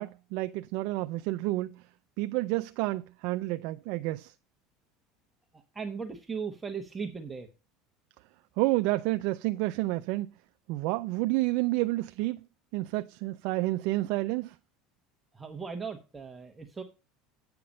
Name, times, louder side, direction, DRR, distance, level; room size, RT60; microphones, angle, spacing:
voice 1, 0.0-1.9 2.2-4.3 8.6-10.3 10.7-12.4 12.7-14.6, right 19 dB, 65° right, 0.3 m, -30 dB
voice 2, 5.5-7.5 15.3-16.8, right 5 dB, 15° right, 1.0 m, -38 dB
8.5 x 5.8 x 5.2 m
supercardioid pair, 110°, 0 cm